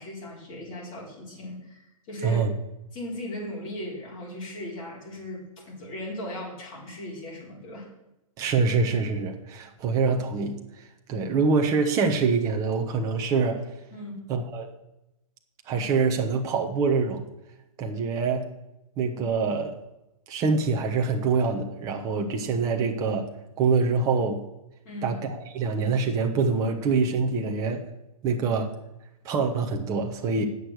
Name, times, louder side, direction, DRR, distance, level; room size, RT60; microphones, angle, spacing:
voice 1, 0.0-2.5 2.9-7.9 13.9-14.2 24.8-25.2, left 1 dB, 30° left, -4 dB, 4.5 m, -37 dB
voice 2, 8.4-10.6 11.1-13.6 14.3-14.7 15.7-17.2 17.8-18.4 19.0-19.7 20.3-23.3 23.6-24.4 25.0-27.8 28.2-28.7 29.2-30.4, right 4 dB, 20° right, 3 dB, 1.0 m, -25 dB
8.9 x 6.6 x 7.8 m, 0.91 s
hypercardioid pair, 155°, 19 cm